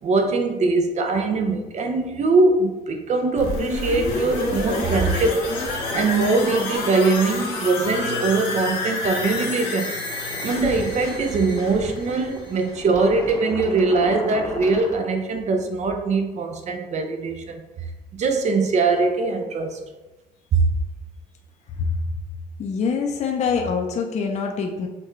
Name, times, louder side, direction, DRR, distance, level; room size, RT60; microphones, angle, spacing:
voice 1, 0.0-5.4 5.7-10.0 10.4-17.7 18.1-19.8 20.5-20.6, right 3 dB, 45° right, 5 dB, 0.5 m, -22 dB
sound 1, 3.4-13.1 13.4-13.5, left 3 dB, 85° left, 1.0 m, -29 dB
sound 2, 4.1-15.0, left 1 dB, 15° left, 0.8 m, -38 dB
voice 2, 22.6-24.9, left 5 dB, 40° left, 2 dB, 0.5 m, -24 dB
5.8 x 2.2 x 3.0 m, 1.1 s
cardioid pair, 110°, 17 cm